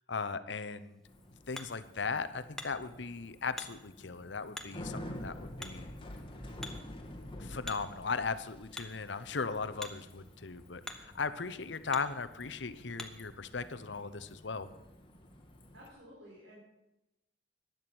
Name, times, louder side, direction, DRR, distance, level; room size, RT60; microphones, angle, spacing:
voice 1, 0.1-1.0 1.5-5.9 7.4-14.7, left 4 dB, 65° left, 12 dB, 0.9 m, -37 dB
Hammer, 0.7-13.3, left 1 dB, 5° left, 1.1 m, -50 dB
Bicycle, 1.0-15.9, left 1 dB, 30° left, 1.7 m, -49 dB
voice 2, 15.7-16.6, equal, 85° right, -5 dB, 4.7 m, -53 dB
14.5 x 10.5 x 6.2 m, 0.94 s
head